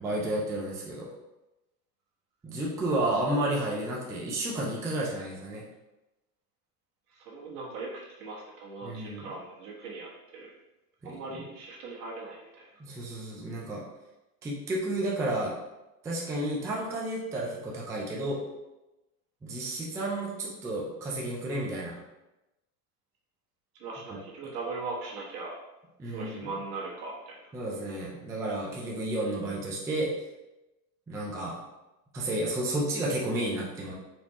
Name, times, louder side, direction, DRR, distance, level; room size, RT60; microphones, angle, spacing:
voice 1, 0.0-1.1 2.4-5.6 8.8-9.3 11.0-11.2 12.8-13.8 14.4-15.6 16.0-18.4 19.4-22.0 24.1-24.2 26.0-26.5 27.5-30.1 31.1-31.6 32.1-33.9, right 1 dB, 5° right, -3 dB, 0.3 m, -31 dB
voice 2, 7.1-10.5 11.0-12.7 23.8-25.5 26.1-27.4, right 3 dB, 70° right, -3 dB, 1.3 m, -39 dB
4.3 x 2.2 x 2.9 m, 1.0 s
hypercardioid pair, 90°, 47 cm